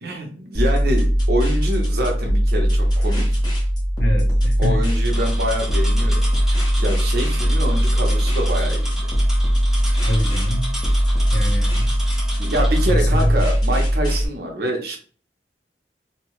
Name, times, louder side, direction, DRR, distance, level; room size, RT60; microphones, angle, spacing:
voice 1, 0.0-3.4 4.6-6.2 6.8-8.9 12.4-15.0, equal, 60° right, 0.8 m, -26 dB
sound 1, 0.5-14.3, equal, 25° left, 1.0 m, -19 dB
voice 2, 4.0-4.8 10.1-10.7 11.3-11.9 12.9-13.3, equal, 65° left, 0.8 m, -25 dB
sound 2, 5.1-12.9, equal, 5° right, 0.6 m, -34 dB
2.8 x 2.3 x 3.0 m
head